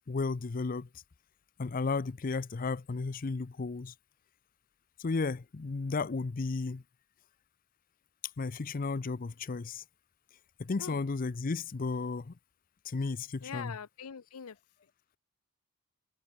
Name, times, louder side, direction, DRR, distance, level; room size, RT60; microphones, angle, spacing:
voice 1, 0.1-0.9 1.6-3.9 5.0-6.8 8.4-9.8 10.6-12.3 12.8-13.8, left 4 dB, 40° left, 0.5 m, -33 dB
voice 2, 13.4-14.6, left 7 dB, 80° left, 0.6 m, -42 dB
head